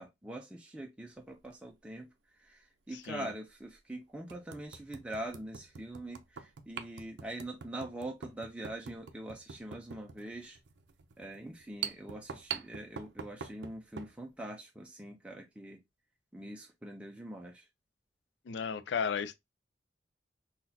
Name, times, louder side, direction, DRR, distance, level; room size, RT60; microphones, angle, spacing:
voice 1, 0.0-10.6 11.2-15.8 16.3-17.7, right 1 dB, 5° right, 0.4 m, -43 dB
sound 1, 1.3-1.5 3.0-3.1 3.7-3.8 4.3-14.2, right 7 dB, 75° right, 0.4 m, -44 dB
voice 2, 2.9-3.3 18.5-19.4, left 6 dB, 80° left, 0.4 m, -34 dB
3.8 x 2.3 x 2.6 m
head